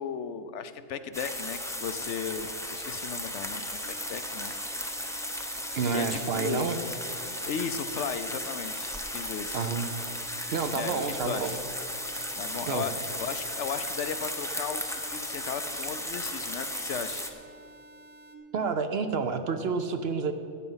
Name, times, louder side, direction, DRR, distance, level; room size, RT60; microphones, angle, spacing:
voice 1, 0.0-4.5 5.9-6.7 7.5-9.7 10.7-11.6 12.4-17.3, left 7 dB, 70° left, 11 dB, 0.9 m, -36 dB
sound 1, 1.1-17.3, left 1 dB, 5° left, 0.5 m, -35 dB
sound 2, 3.8-18.4, right 2 dB, 80° right, 1.4 m, -52 dB
voice 2, 5.7-6.8 9.5-9.9 10.5-11.5 12.7-12.8 18.5-20.3, right 5 dB, 60° right, 8 dB, 0.8 m, -29 dB
13.0 x 9.1 x 5.6 m, 2.5 s
omnidirectional pair, 1.3 m